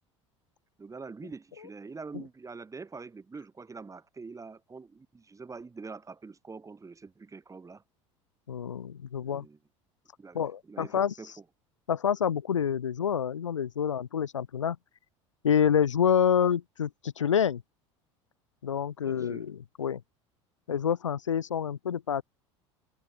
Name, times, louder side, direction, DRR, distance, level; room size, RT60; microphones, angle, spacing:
voice 1, 0.8-7.8 9.2-9.6 10.2-10.4 10.6-11.4 19.0-19.5, right 4 dB, 20° right, 7.3 m, -45 dB
voice 2, 8.5-9.4 10.3-11.1 11.9-14.8 15.4-17.6 18.6-20.0 20.7-22.2, left 8 dB, 90° left, 1.0 m, -27 dB
hypercardioid pair, 75°, 15 cm